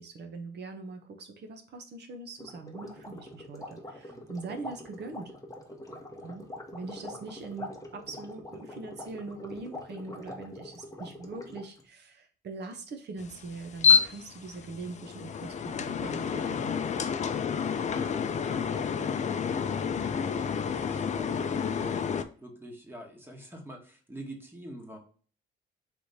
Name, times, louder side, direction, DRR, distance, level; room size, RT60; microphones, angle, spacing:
voice 1, 0.0-5.3 6.2-6.4 6.7-16.7, right 3 dB, 60° right, 4 dB, 0.9 m, -42 dB
sound 1, 2.4-11.8, left 1 dB, 15° left, 1.0 m, -44 dB
voice 2, 5.7-6.4 17.2-19.4 19.7-22.1 22.4-25.0, equal, 10° right, 1 dB, 1.3 m, -47 dB
sound 2, 13.2-22.2, left 6 dB, 35° left, 0.4 m, -29 dB
3.4 x 3.1 x 4.0 m, 0.42 s
cardioid pair, 90°, 20 cm